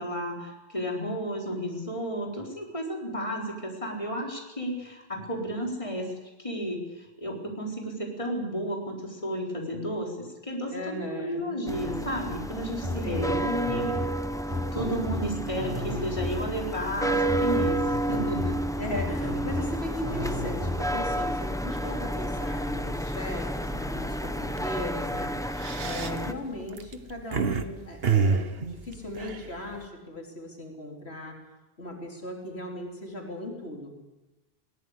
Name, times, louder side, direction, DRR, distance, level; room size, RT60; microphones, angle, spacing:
voice 1, 0.0-6.1 6.4-13.9 14.7-18.6, equal, 30° left, -1 dB, 4.5 m, -32 dB
voice 2, 10.7-11.5 13.0-13.5 18.8-31.3 31.8-33.9, left 1 dB, 85° left, 0 dB, 3.9 m, -37 dB
sound 1, 11.7-26.3, right 1 dB, 5° left, 0.9 m, -31 dB
sound 2, 12.8-16.7 17.3-21.2, left 1 dB, 25° right, 7.1 m, -35 dB
sound 3, 23.7-24.0 24.4-24.6 25.3-27.6 28.0-29.8, right 5 dB, 70° right, 1.4 m, -27 dB
21.5 x 19.0 x 8.2 m, 1.1 s
omnidirectional pair, 1.1 m